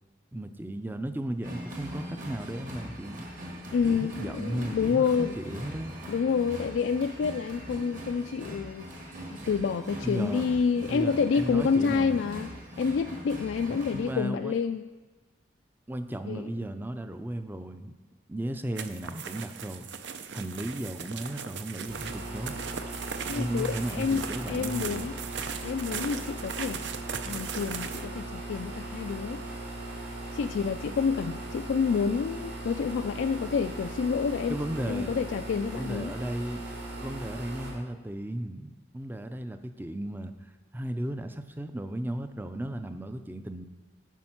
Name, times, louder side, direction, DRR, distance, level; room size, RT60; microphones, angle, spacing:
voice 1, 0.3-3.2 3.8-5.9 10.0-10.4 10.9-12.2 13.7-14.5 15.9-17.9 18.3-19.9 20.3-22.6 23.3-25.1 34.5-35.2 35.7-36.6 37.0-43.6, right 1 dB, 10° right, 9 dB, 0.4 m, -35 dB
sound 1, 1.4-14.1, equal, 45° right, 1.5 m, -41 dB
voice 2, 3.7-5.6 6.1-8.9 9.3-12.5 12.8-14.9 16.3-16.5 23.3-25.1 25.6-26.8 27.3-29.4 30.3-34.6 34.8-36.1, left 6 dB, 70° left, 7 dB, 0.3 m, -28 dB
sound 2, 18.8-28.1, right 7 dB, 65° right, 0.5 m, -38 dB
sound 3, 21.9-37.7, right 2 dB, 85° right, 3.2 m, -39 dB
12.0 x 5.2 x 5.8 m, 1.3 s
head